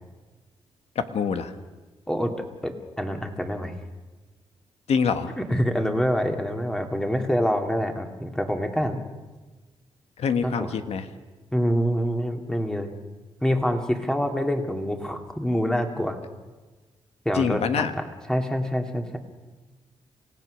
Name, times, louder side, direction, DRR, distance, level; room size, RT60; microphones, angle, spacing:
voice 1, 0.9-1.5 4.9-5.3 10.2-11.1 17.3-17.9, left 6 dB, 75° left, 9 dB, 1.5 m, -25 dB
voice 2, 2.6-3.7 5.4-9.0 10.4-10.7 11.5-12.9 13.4-16.2 17.2-17.7 18.0-19.2, equal, 5° left, 4 dB, 2.5 m, -26 dB
28.0 x 16.5 x 6.5 m, 1.3 s
cardioid pair, 85°, 11 cm